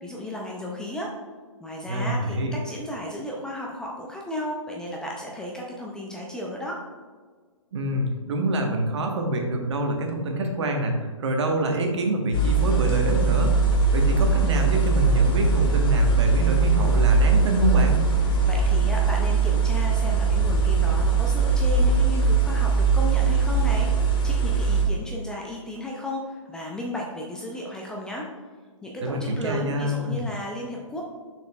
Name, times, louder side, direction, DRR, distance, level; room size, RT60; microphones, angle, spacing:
voice 1, 0.0-1.1 1.6-6.8 18.4-28.3 28.8-31.0, left 1 dB, 5° left, -2 dB, 0.4 m, -34 dB
voice 2, 1.9-2.5 7.7-13.5 13.9-18.0 29.0-30.2, right 1 dB, 55° right, 2 dB, 1.3 m, -26 dB
sound 1, 12.3-24.8, right 4 dB, 40° left, 1.6 m, -21 dB
6.8 x 6.1 x 2.3 m, 1.5 s
hypercardioid pair, 140°, 17 cm